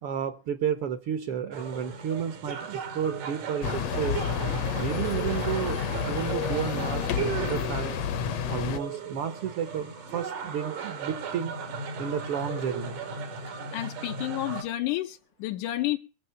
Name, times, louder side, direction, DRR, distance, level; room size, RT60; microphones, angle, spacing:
voice 1, 0.0-4.2 4.7-8.0 8.5-11.5 12.0-13.0, right 8 dB, 65° right, 1.5 m, -32 dB
sound 1, 1.5-14.6, right 6 dB, 85° right, 4.0 m, -36 dB
sound 2, 3.6-8.8, left 8 dB, 65° left, 1.8 m, -30 dB
voice 2, 13.7-16.0, left 15 dB, 85° left, 2.4 m, -30 dB
22.0 x 7.4 x 5.7 m
omnidirectional pair, 3.5 m